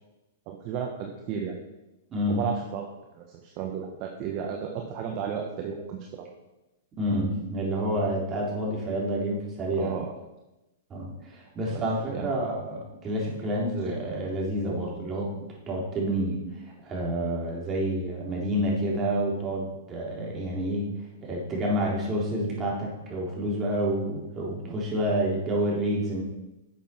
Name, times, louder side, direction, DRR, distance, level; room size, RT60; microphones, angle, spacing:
voice 1, 0.5-1.6 2.3-2.9 3.1-6.3 9.8-10.1 11.7-11.8 12.1-12.4 24.7-24.8, right 7 dB, 45° right, 2 dB, 1.4 m, -33 dB
voice 2, 2.1-2.4 7.0-9.9 10.9-15.3 15.7-16.4 16.8-20.9 21.2-26.2, right 1 dB, 25° right, -3 dB, 3.7 m, -28 dB
11.5 x 7.3 x 4.5 m, 0.98 s
hypercardioid pair, 120°, 0 cm